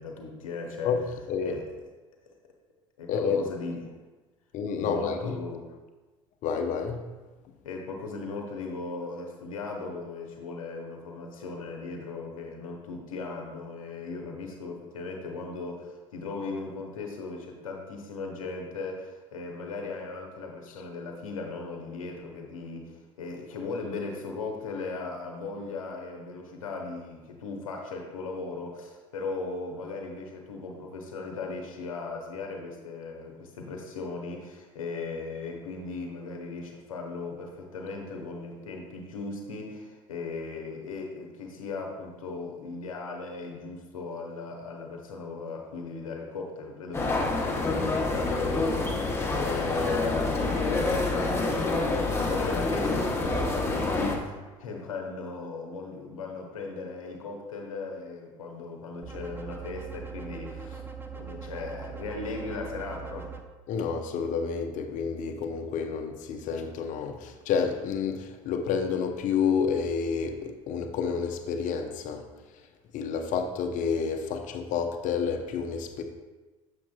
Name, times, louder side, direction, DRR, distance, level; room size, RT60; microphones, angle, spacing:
voice 1, 0.0-0.9 1.4-1.6 3.0-3.8 4.8-5.6 7.6-60.8 61.1-63.3, left 3 dB, 75° left, 1 dB, 0.9 m, -37 dB
voice 2, 0.8-1.6 3.1-3.5 4.5-5.4 6.4-7.1 63.7-72.7 72.9-76.0, left 6 dB, 50° left, 5 dB, 0.7 m, -29 dB
sound 1, 46.9-54.2, left 3 dB, 15° left, 1.0 m, -27 dB
sound 2, 59.0-63.4, right 6 dB, 10° right, 0.6 m, -41 dB
7.3 x 6.4 x 2.3 m, 1.2 s
figure-of-eight pair, 60°, 17 cm